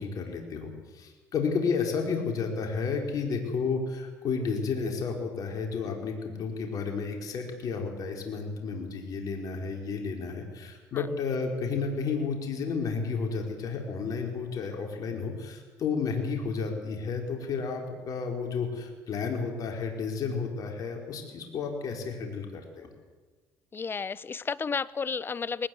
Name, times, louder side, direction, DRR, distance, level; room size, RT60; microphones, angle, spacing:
voice 1, 0.0-22.9, left 5 dB, 55° left, 2 dB, 4.7 m, -32 dB
voice 2, 23.7-25.7, left 5 dB, 30° left, 19 dB, 0.8 m, -32 dB
21.0 x 19.0 x 7.9 m, 1.3 s
supercardioid pair, 80°, 7 cm